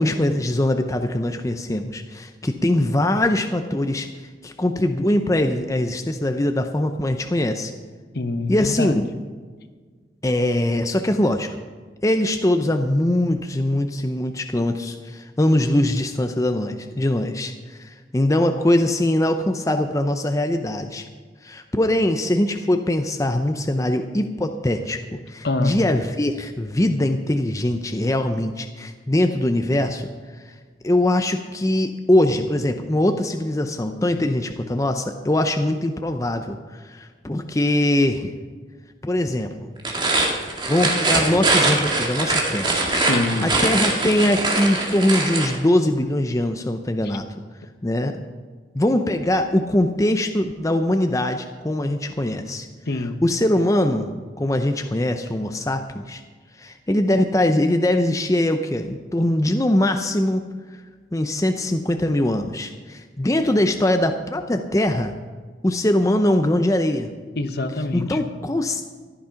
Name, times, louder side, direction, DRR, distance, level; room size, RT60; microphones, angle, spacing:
voice 1, 0.0-7.7 8.5-9.1 10.2-11.6 12.0-21.1 21.4-30.1 30.4-30.6 30.8-38.3 39.0-39.7 40.7-42.8 43.4-47.3 47.8-48.2 48.7-52.7 52.9-56.2 56.5-60.8 61.1-65.1 65.6-67.1 67.9-68.8, left 1 dB, 15° left, 6 dB, 0.6 m, -22 dB
voice 2, 8.1-9.0 25.4-25.8 42.9-43.5 52.9-53.2 67.4-68.3, left 2 dB, 55° left, 9 dB, 1.0 m, -25 dB
sound 1, 39.8-45.6, right 2 dB, 25° right, 2.1 m, -22 dB
14.0 x 11.5 x 5.7 m, 1.5 s
head